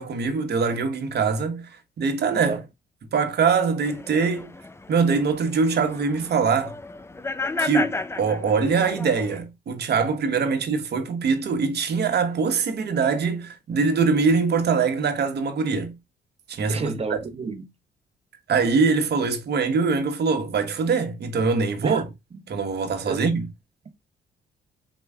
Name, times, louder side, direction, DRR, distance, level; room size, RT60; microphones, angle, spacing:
voice 1, 0.0-1.6 2.0-2.6 3.1-4.5 4.9-6.7 7.6-15.9 16.5-17.2 18.5-22.0 22.5-23.5, right 5 dB, 55° right, 1.1 m, -23 dB
sound 1, 3.8-9.4, left 3 dB, 15° left, 0.4 m, -33 dB
voice 2, 16.7-17.7 21.8-22.0 22.3-22.4 23.1-23.2, right 4 dB, 30° right, 1.0 m, -30 dB
4.5 x 3.1 x 3.5 m
cardioid pair, 90°, 20 cm